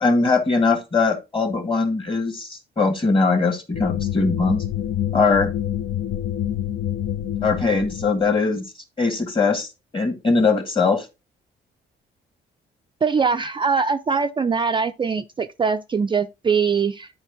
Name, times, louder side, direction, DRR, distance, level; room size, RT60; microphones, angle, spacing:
voice 1, 0.0-4.6 5.1-5.5 7.4-8.6 9.0-9.7 9.9-11.1, left 4 dB, 25° left, 1.8 m, -21 dB
sound 1, 3.7-8.4, left 11 dB, 65° left, 0.6 m, -27 dB
voice 2, 13.0-17.1, right 5 dB, 25° right, 0.4 m, -22 dB
9.9 x 4.5 x 3.6 m
cardioid pair, 90°, 20 cm